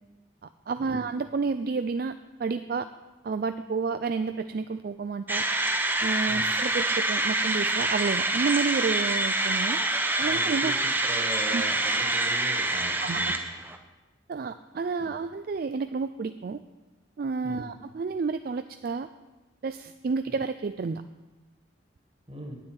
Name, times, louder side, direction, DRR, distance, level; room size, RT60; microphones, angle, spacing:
voice 1, 0.7-2.9 3.2-5.4 6.0-9.8 10.2-10.7 11.5-11.6 13.0-13.3 14.3-16.6 17.2-19.1 19.6-21.0, right 4 dB, 50° right, 10 dB, 0.3 m, -30 dB
sound 1, 5.3-13.8, right 2 dB, 10° right, 0.7 m, -26 dB
voice 2, 10.2-10.7 11.1-13.5 15.0-15.1 17.4-17.7 22.3-22.5, right 1 dB, 30° right, 2 dB, 1.7 m, -39 dB
9.6 x 7.5 x 8.8 m, 1.2 s
head